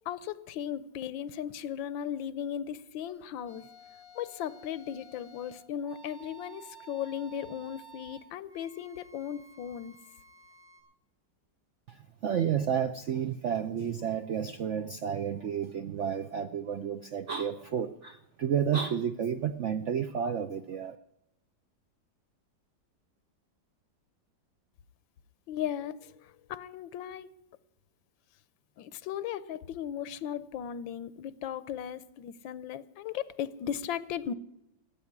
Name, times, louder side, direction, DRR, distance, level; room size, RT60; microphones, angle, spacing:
voice 1, 0.1-3.6 4.1-10.0 25.5-27.3 28.8-34.3, left 9 dB, 85° left, 17 dB, 1.5 m, -37 dB
sound 1, 3.1-10.8, right 3 dB, 35° right, 5.4 m, -53 dB
voice 2, 11.9-21.0, right 8 dB, 70° right, 9 dB, 0.7 m, -31 dB
14.5 x 8.4 x 9.5 m, 0.82 s
omnidirectional pair, 2.0 m